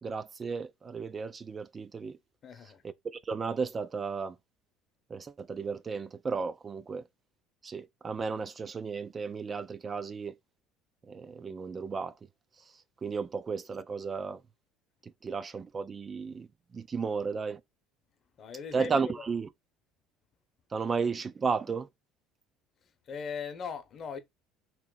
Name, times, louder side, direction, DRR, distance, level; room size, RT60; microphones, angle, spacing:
voice 1, 0.0-2.2 3.1-4.4 5.1-7.0 7.6-10.4 11.1-12.1 13.0-14.4 15.0-16.5 16.7-17.6 18.7-19.5 20.7-21.9, right 5 dB, 30° right, 0.3 m, -34 dB
voice 2, 2.4-2.8 18.4-19.2 23.1-24.2, left 6 dB, 45° left, 0.8 m, -39 dB
3.0 x 2.9 x 3.8 m
supercardioid pair, 100°, 0 cm